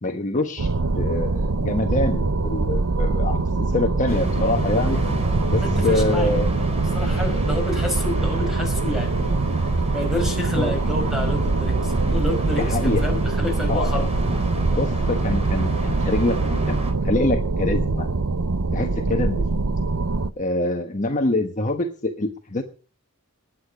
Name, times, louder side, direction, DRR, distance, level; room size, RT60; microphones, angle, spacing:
voice 1, 0.0-0.7 1.0-5.0 5.5-6.5 10.5-10.7 12.4-13.1 13.7-14.1 14.7-16.4 16.7-18.1 18.7-19.5 20.4-22.6, left 2 dB, 35° left, 4 dB, 1.2 m, -25 dB
sound 1, 0.6-20.3, right 3 dB, 80° right, 0.8 m, -23 dB
sound 2, 4.1-16.9, equal, 30° right, 3.4 m, -31 dB
voice 2, 5.5-6.6 6.9-9.3 9.9-14.1, left 1 dB, ahead, 3 dB, 5.6 m, -29 dB
20.5 x 8.6 x 5.1 m, 0.38 s
head